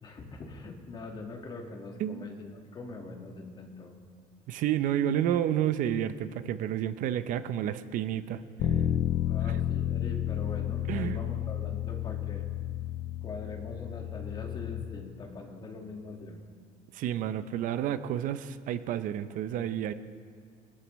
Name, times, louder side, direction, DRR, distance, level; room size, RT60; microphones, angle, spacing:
voice 1, 0.0-3.9 9.2-12.4 13.2-16.4, left 3 dB, 30° left, 2 dB, 1.7 m, -42 dB
voice 2, 4.5-8.4 9.4-9.5 10.9-11.2 16.9-19.9, right 10 dB, 55° right, 12 dB, 0.6 m, -30 dB
Bass guitar, 8.6-14.8, left 11 dB, 60° left, 0.8 m, -31 dB
22.5 x 13.0 x 3.1 m, 2.1 s
cardioid pair, 160°, 16 cm